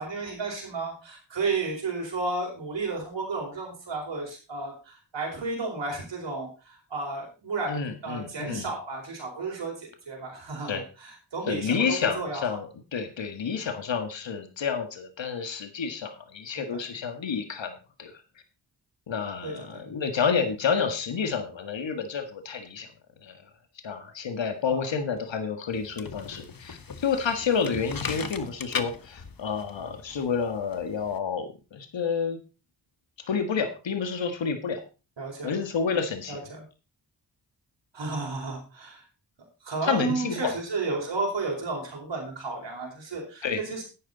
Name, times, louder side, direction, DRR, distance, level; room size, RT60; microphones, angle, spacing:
voice 1, 0.0-12.4 16.6-16.8 19.4-19.7 24.7-24.9 28.2-28.3 35.2-35.6 36.3-36.6 37.9-39.0 39.6-43.8, right 3 dB, 75° right, -1 dB, 4.5 m, -33 dB
voice 2, 7.7-8.7 10.7-10.8 11.5-17.7 18.0-18.1 19.1-22.9 23.2-23.3 23.8-32.4 33.3-34.8 35.4-36.4 39.8-40.5 43.4-43.6, left 6 dB, 85° left, 8 dB, 1.7 m, -29 dB
sound 1, 25.7-31.2, left 5 dB, 50° left, 1.3 m, -38 dB
11.0 x 9.1 x 4.0 m, 0.32 s
cardioid pair, 50°, 44 cm